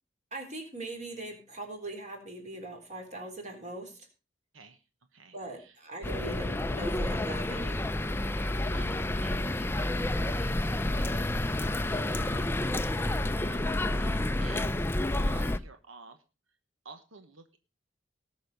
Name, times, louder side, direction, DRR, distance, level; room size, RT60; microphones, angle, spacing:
voice 1, 0.3-4.1 5.3-7.8, right 1 dB, 35° right, 3 dB, 3.7 m, -41 dB
voice 2, 5.1-5.8 8.3-14.7 15.1-16.2 16.8-17.6, right 4 dB, 90° right, 8 dB, 1.2 m, -52 dB
sound 1, 6.0-15.6, left 1 dB, 10° left, 0.5 m, -29 dB
18.5 x 6.4 x 5.3 m, 0.31 s
head